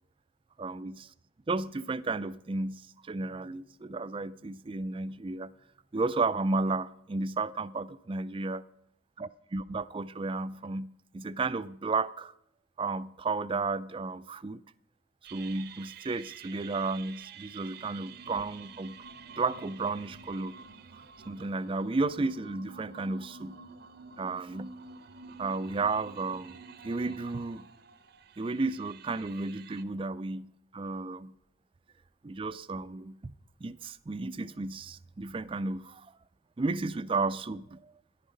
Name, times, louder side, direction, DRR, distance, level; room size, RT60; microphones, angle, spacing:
voice 1, 0.6-1.1 1.5-5.5 5.9-8.6 9.2-12.3 12.8-14.6 15.3-19.0 19.4-20.5 20.9-23.6 24.2-24.7 25.4-27.7 28.4-31.3 32.2-33.3 33.6-36.1 36.6-37.9, right 3 dB, 25° right, 0.4 m, -33 dB
sound 1, 15.2-29.8, right 5 dB, 55° right, 0.7 m, -49 dB
14.0 x 11.0 x 5.1 m
head